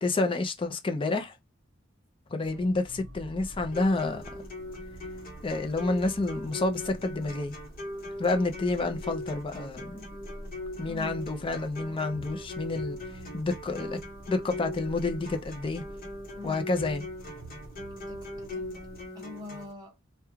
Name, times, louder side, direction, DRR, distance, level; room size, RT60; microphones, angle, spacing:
voice 1, 0.0-1.4 2.3-4.2 5.4-7.6 8.2-10.1 10.8-13.0 13.3-14.0 14.3-15.9 16.4-17.0, left 2 dB, 25° left, 0.4 m, -29 dB
voice 2, 2.4-2.7 10.8-11.1 16.3-16.6 18.1-18.8 19.1-20.0, left 4 dB, 20° right, 0.8 m, -44 dB
sound 1, 2.4-19.1, right 1 dB, 70° right, 0.8 m, -47 dB
sound 2, 3.7-19.7, left 1 dB, 45° left, 0.9 m, -40 dB
2.3 x 2.2 x 2.9 m
head